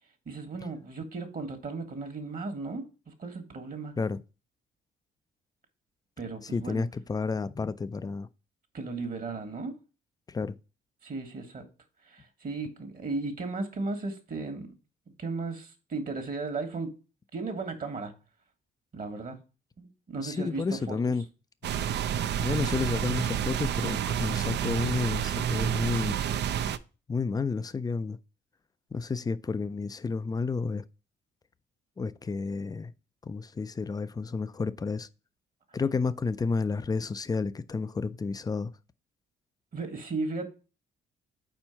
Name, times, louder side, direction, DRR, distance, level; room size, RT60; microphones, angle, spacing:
voice 1, 0.3-3.9 6.2-6.8 8.7-9.7 11.0-11.6 12.1-14.7 15.2-16.9 17.3-18.1 18.9-19.4 19.8-21.1 39.7-40.5, right 3 dB, 45° right, 1.4 m, -35 dB
voice 2, 6.4-8.3 10.3-10.6 20.1-21.2 22.3-26.2 27.1-28.2 28.9-30.8 32.0-32.9 33.2-35.1 35.7-38.7, left 4 dB, 20° left, 0.4 m, -31 dB
sound 1, 21.6-26.8, right 9 dB, 60° right, 0.5 m, -29 dB
4.5 x 4.4 x 5.6 m
cardioid pair, 90°, 20 cm